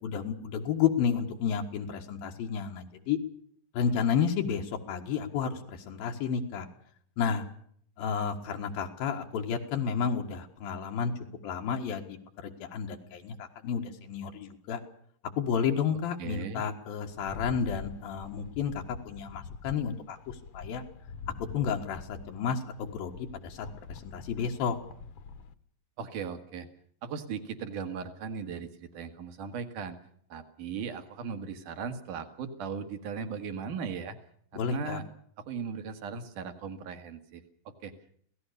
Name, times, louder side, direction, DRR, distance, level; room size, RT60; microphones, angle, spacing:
voice 1, 0.0-3.2 3.7-6.7 7.2-7.5 8.0-11.1 11.4-14.8 15.4-20.8 21.3-24.8 34.5-35.0, left 7 dB, 85° left, 2 dB, 3.5 m, -31 dB
voice 2, 16.2-16.6 26.0-26.7 27.0-30.0 30.3-34.2 34.5-35.0 35.5-37.4 37.8-37.9, right 6 dB, 65° right, 8 dB, 3.4 m, -37 dB
Rattle, 17.1-25.5, left 5 dB, 60° left, 2.0 m, -45 dB
26.5 x 18.0 x 6.7 m, 0.64 s
omnidirectional pair, 4.1 m